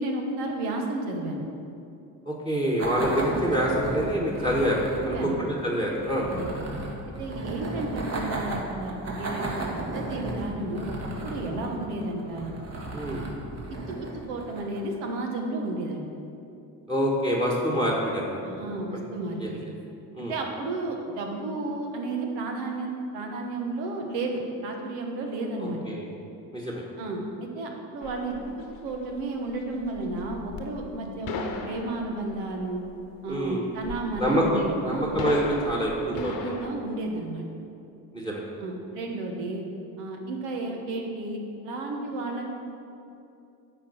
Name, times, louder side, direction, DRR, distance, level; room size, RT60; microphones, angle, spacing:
voice 1, 0.0-1.4 5.0-5.4 6.2-6.5 7.2-10.9 11.2-12.5 13.7-16.0 18.4-19.7 20.2-25.8 27.0-28.4 28.8-32.8 33.2-35.1 36.1-37.5 38.6-39.6 40.0-42.4, right 2 dB, 90° right, 2 dB, 1.1 m, -32 dB
voice 2, 2.2-6.3 12.9-13.2 16.9-18.4 18.9-19.0 19.4-19.5 20.1-20.3 25.6-26.1 26.5-26.8 33.3-33.6 34.2-36.4 38.1-38.4, equal, 15° right, -2 dB, 1.6 m, -26 dB
sound 1, 2.8-15.0, right 2 dB, 40° right, 1.6 m, -35 dB
sound 2, 28.0-36.7, left 4 dB, 60° left, 1.0 m, -39 dB
8.9 x 4.5 x 6.3 m, 2.6 s
supercardioid pair, 60°, 40 cm